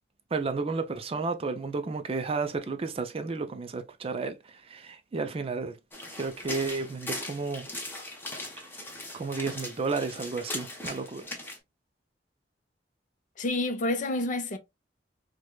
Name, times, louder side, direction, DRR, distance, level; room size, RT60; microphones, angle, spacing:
voice 1, 0.3-5.8 6.1-7.7 9.1-11.2, right 4 dB, 35° right, 0.4 m, -32 dB
sound 1, 5.9-11.6, left 1 dB, 10° left, 0.8 m, -39 dB
voice 2, 13.4-14.6, left 2 dB, 45° left, 0.5 m, -28 dB
4.7 x 2.2 x 2.2 m
head